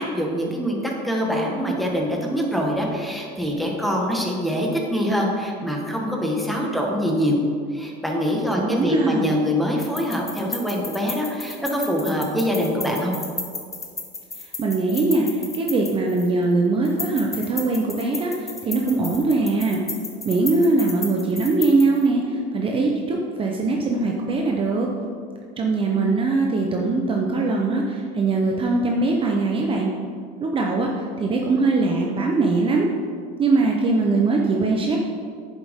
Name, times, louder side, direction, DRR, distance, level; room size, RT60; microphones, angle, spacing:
voice 1, 0.0-7.4 7.7-13.1, equal, ahead, -2 dB, 1.4 m, -24 dB
voice 2, 8.6-9.3 14.4-19.8 20.2-24.9 25.6-29.9 30.4-32.9 33.4-35.0, right 3 dB, 30° right, 0 dB, 0.8 m, -21 dB
sound 1, 9.8-16.4 16.8-22.1, left 3 dB, 15° left, 0.9 m, -34 dB
9.4 x 7.3 x 3.7 m, 2.2 s
cardioid pair, 130°, 19 cm